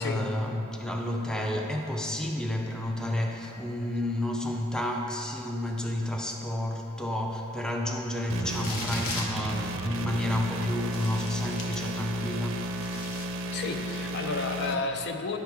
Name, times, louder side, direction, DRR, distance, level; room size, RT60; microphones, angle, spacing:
voice 1, 0.0-13.0, left 1 dB, 5° left, 1 dB, 0.4 m, -30 dB
sound 1, 8.3-14.8, right 1 dB, 65° right, 0.5 m, -34 dB
sound 2, 8.5-9.4 10.2-10.3 10.9-12.1 12.5-13.2, left 3 dB, 70° left, 1.0 m, -38 dB
voice 2, 13.5-15.4, left 4 dB, 55° left, 5 dB, 0.6 m, -31 dB
11.0 x 6.0 x 3.5 m, 2.9 s
head